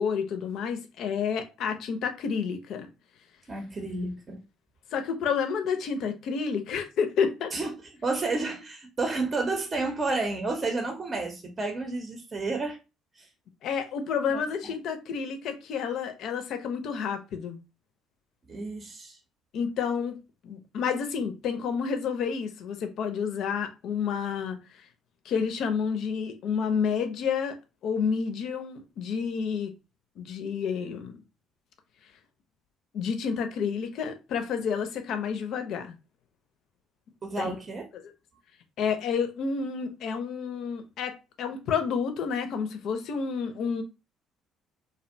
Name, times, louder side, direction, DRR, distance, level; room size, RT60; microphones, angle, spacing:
voice 1, 0.0-2.9 4.9-7.5 13.6-17.6 19.5-24.6 25.2-27.6 27.8-29.7 30.2-31.2 32.9-35.9 37.4-37.6 37.9-38.1 38.8-43.8, left 6 dB, 65° left, 0.5 m, -30 dB
voice 2, 3.5-4.4 7.5-7.7 8.0-12.8 13.2-13.3 14.3-14.7 18.5-19.2 37.2-37.9, right 3 dB, 35° right, 0.7 m, -31 dB
2.6 x 2.1 x 2.6 m
hypercardioid pair, 55°, 0 cm